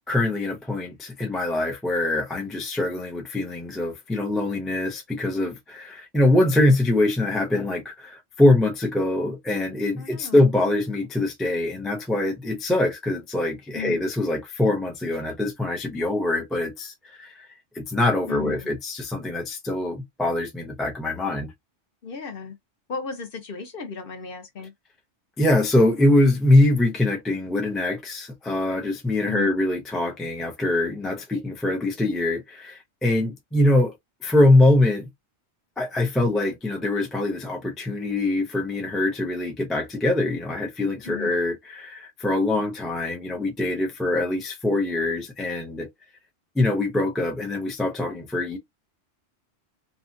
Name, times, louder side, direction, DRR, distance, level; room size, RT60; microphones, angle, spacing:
voice 1, 0.1-16.9 17.2-17.3 17.7-21.5 25.4-33.9 34.2-35.1 35.8-45.9 46.6-48.6, left 2 dB, ahead, 0.3 m, -23 dB
voice 2, 10.0-10.4 13.7-14.0 18.3-18.8 22.0-22.6 22.9-24.7 29.2-29.5 41.0-41.4, left 5 dB, 55° left, 0.9 m, -35 dB
2.8 x 2.3 x 2.5 m
omnidirectional pair, 1.2 m